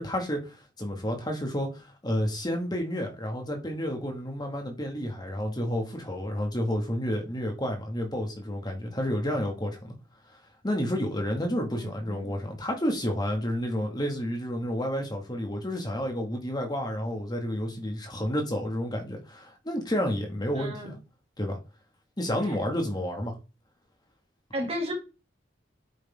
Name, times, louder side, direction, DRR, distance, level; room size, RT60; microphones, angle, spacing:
voice 1, 0.0-9.9 10.6-21.0 21.4-21.6 22.2-23.3, equal, 20° left, 2.3 m, -30 dB
voice 2, 11.8-12.3 20.5-21.0 24.5-24.9, equal, 30° right, 2.9 m, -34 dB
8.7 x 6.6 x 3.8 m
head